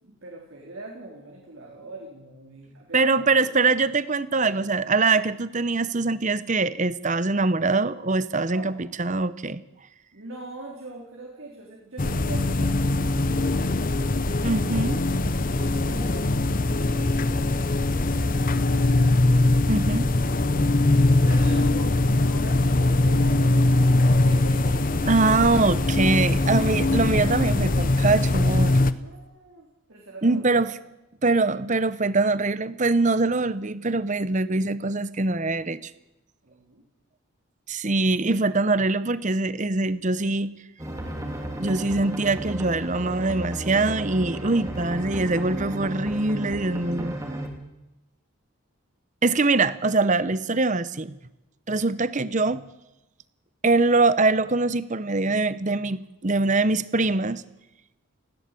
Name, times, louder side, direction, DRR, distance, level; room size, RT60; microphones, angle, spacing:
voice 1, 0.0-3.7 8.4-8.8 10.1-14.8 15.4-20.8 21.2-23.8 24.2-25.1 29.0-30.7 36.4-36.8, right 2 dB, 70° right, -2 dB, 3.9 m, -44 dB
voice 2, 2.9-9.6 14.4-15.0 19.7-20.1 25.1-28.8 30.2-30.7 31.2-35.9 37.7-40.5 41.6-47.1 49.2-51.2 51.7-52.6 53.6-57.4, right 3 dB, 35° right, 16 dB, 0.8 m, -23 dB
sound 1, 12.0-28.9, left 2 dB, 40° left, 0.8 m, -22 dB
sound 2, 40.8-47.5, right 1 dB, 15° right, 3.2 m, -33 dB
19.0 x 16.5 x 8.5 m, 0.96 s
head